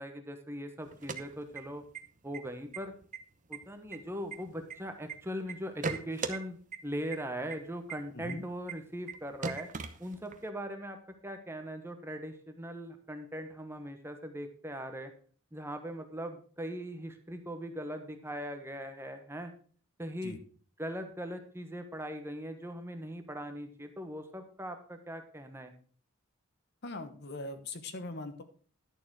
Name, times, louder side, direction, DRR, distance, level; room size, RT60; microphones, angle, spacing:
voice 1, 0.0-1.8 2.2-2.9 3.5-9.7 10.0-11.0 11.2-15.1 15.5-19.5 20.0-20.4 20.8-25.7, equal, 10° right, 7 dB, 1.1 m, -40 dB
sound 1, 0.9-2.0 2.3-2.4 2.7-3.2 3.5-5.1 5.5-6.4 6.7-6.8 7.1-7.2 7.5-7.6 7.9-8.0 8.3-8.4 8.7-8.8 9.1-9.2 9.4-10.5, right 4 dB, 35° right, 0.9 m, -37 dB
voice 2, 26.8-28.4, left 2 dB, 50° left, 9 dB, 1.1 m, -41 dB
11.0 x 6.9 x 4.7 m, 0.43 s
head